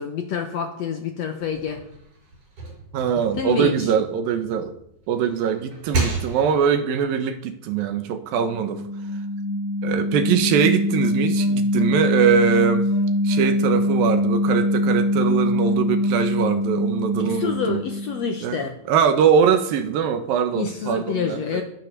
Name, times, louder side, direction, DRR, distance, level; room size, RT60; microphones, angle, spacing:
voice 1, 0.0-1.8 3.3-3.9 17.2-18.8 20.5-21.6, left 7 dB, 65° left, 5 dB, 1.8 m, -27 dB
sound 1, 1.4-4.6 5.0-6.8, right 3 dB, 55° right, 6.8 m, -32 dB
voice 2, 2.9-4.7 5.1-8.8 9.8-12.9 13.2-17.8 18.4-18.6 18.9-21.6, right 7 dB, 75° right, 9 dB, 2.8 m, -22 dB
sound 2, 8.3-18.4, left 1 dB, 40° left, 2.8 m, -23 dB
20.5 x 7.0 x 6.7 m, 0.77 s
omnidirectional pair, 4.2 m